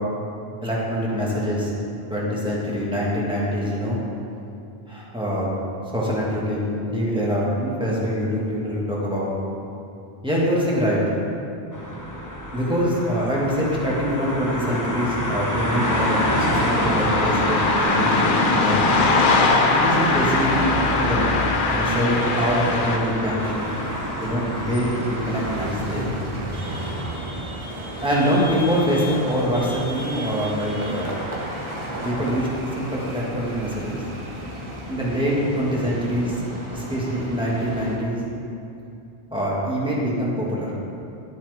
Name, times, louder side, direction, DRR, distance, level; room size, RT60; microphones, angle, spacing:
voice 1, 0.6-1.7 2.1-4.0 4.9-5.5 5.9-9.3 10.2-11.0 12.5-17.6 17.9-18.9 19.7-21.4 21.7-23.5 24.2-26.0 28.0-31.2 32.0-32.5 32.8-34.0 34.9-36.4 36.7-38.2 39.3-40.7, equal, 5° right, -6 dB, 1.6 m, -24 dB
sound 1, 11.7-25.7, equal, 20° left, 0.9 m, -26 dB
sound 2, 15.8-23.0, left 3 dB, 60° left, 0.9 m, -22 dB
sound 3, 23.4-38.0, right 1 dB, 30° right, 1.1 m, -33 dB
11.5 x 7.1 x 3.5 m, 2.7 s
omnidirectional pair, 1.0 m